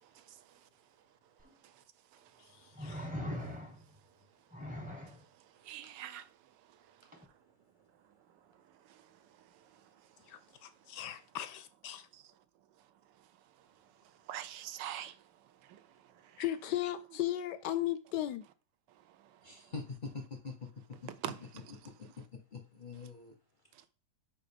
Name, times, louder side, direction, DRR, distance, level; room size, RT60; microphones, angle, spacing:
sound 1, 1.4-1.5 2.8-4.0 4.5-5.2 7.1-7.2, left 1 dB, 5° right, 0.7 m, -41 dB
voice 1, 2.8-3.1 10.3-12.1 16.4-18.4, left 13 dB, 75° left, 1.1 m, -36 dB
voice 2, 5.6-6.3 8.9-9.0 12.1-12.2 14.3-15.2 15.6-15.8 16.2-16.4 21.2-21.4, right 11 dB, 75° right, 1.2 m, -43 dB
voice 3, 19.4-21.0 21.8-23.3, left 4 dB, 40° left, 0.7 m, -45 dB
5.1 x 4.8 x 5.1 m
omnidirectional pair, 2.0 m